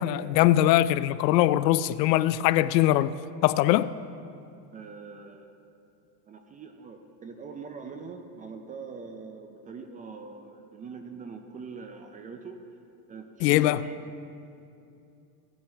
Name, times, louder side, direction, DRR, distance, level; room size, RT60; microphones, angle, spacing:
voice 1, 0.0-3.1 3.4-3.9 13.4-13.8, left 14 dB, 75° left, 0.6 m, -22 dB
voice 2, 4.7-5.5 6.3-12.6 13.1-14.1, right 5 dB, 15° right, 0.4 m, -43 dB
17.0 x 8.9 x 3.4 m
supercardioid pair, 125°, 50 cm